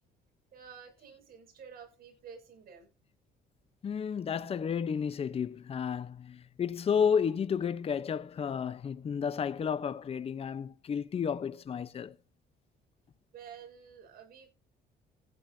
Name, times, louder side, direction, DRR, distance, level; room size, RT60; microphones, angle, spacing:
voice 1, 0.5-2.9 13.3-14.5, right 7 dB, 60° right, 6.4 m, -50 dB
voice 2, 3.8-12.2, left 7 dB, 35° left, 0.9 m, -32 dB
15.5 x 10.5 x 2.8 m
cardioid pair, 110°, 17 cm